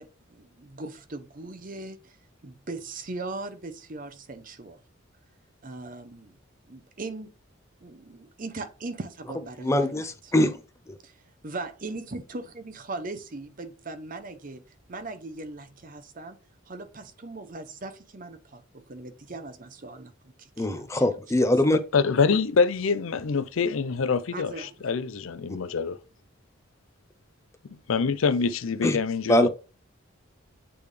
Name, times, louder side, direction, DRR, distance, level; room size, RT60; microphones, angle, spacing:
voice 1, 0.0-2.2 2.4-4.8 5.6-6.4 6.7-7.3 7.8-10.3 11.0-14.6 14.9-16.4 16.7-21.2 24.3-24.9, right 3 dB, 40° right, 0.7 m, -39 dB
voice 2, 9.6-10.6 10.9-11.0 20.6-21.8 28.8-29.0 29.3-29.5, left 1 dB, 15° left, 0.5 m, -22 dB
voice 3, 21.7-26.0 27.9-29.5, left 5 dB, 70° left, 0.5 m, -25 dB
8.5 x 3.4 x 3.3 m
head